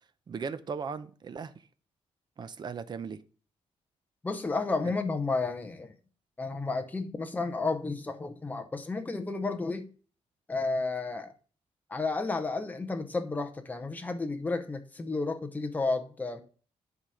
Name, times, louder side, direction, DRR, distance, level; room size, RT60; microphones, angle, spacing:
voice 1, 0.3-1.5 2.4-3.2 4.8-4.9, right 5 dB, 35° right, 0.6 m, -37 dB
voice 2, 4.2-5.9 6.4-9.9 10.5-11.3 11.9-16.4, left 3 dB, 15° left, 0.8 m, -32 dB
10.5 x 4.2 x 4.9 m
wide cardioid pair, 155°, 12 cm